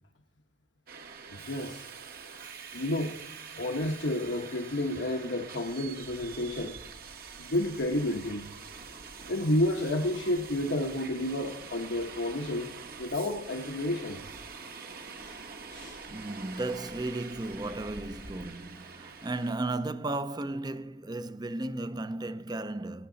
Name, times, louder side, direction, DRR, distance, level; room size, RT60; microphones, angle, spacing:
Subway metro underground, 0.9-19.6, right 5 dB, 55° right, 1.4 m, -45 dB
voice 1, 1.3-1.9 2.7-3.3 3.5-6.8 7.4-8.5 9.3-12.7 13.0-14.2 15.2-15.4 15.7-16.0, left 1 dB, 85° left, 1.2 m, -31 dB
voice 2, 16.1-23.1, right 2 dB, 20° right, 0.5 m, -35 dB
17.0 x 9.5 x 4.0 m
head